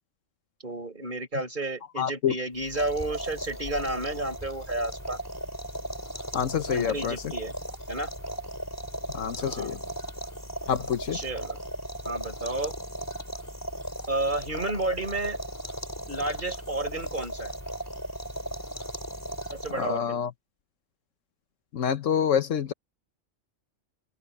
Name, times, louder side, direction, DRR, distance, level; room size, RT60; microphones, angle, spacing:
voice 1, 0.6-5.2 6.7-7.5 7.9-8.1 9.3-9.8 11.1-11.6 12.0-12.7 14.1-15.4 16.1-17.5 19.5-20.2, right 2 dB, 40° right, 5.7 m, -31 dB
voice 2, 2.0-2.3 6.3-7.2 9.1-9.8 10.7-11.2 19.7-20.3 21.7-22.7, left 8 dB, 80° left, 1.3 m, -27 dB
sound 1, 2.6-20.0, right 1 dB, 15° left, 3.7 m, -37 dB
open air
omnidirectional pair, 1.3 m